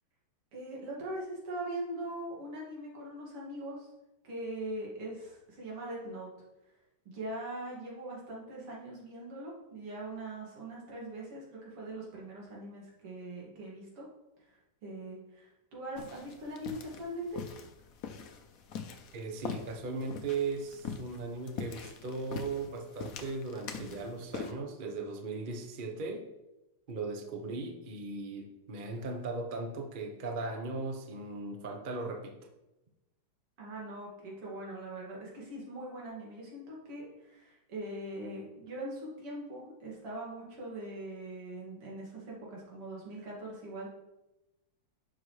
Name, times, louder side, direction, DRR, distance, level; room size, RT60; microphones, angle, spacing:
voice 1, 0.5-3.9 4.2-6.3 7.0-14.1 14.4-17.4 33.6-43.9, right 1 dB, 85° right, -4 dB, 3.1 m, -41 dB
sound 1, 15.9-24.5, left 6 dB, 80° left, 0.7 m, -43 dB
voice 2, 19.1-26.2 26.9-32.4, right 3 dB, 55° right, 4 dB, 0.5 m, -38 dB
11.0 x 6.3 x 3.2 m, 0.96 s
omnidirectional pair, 2.4 m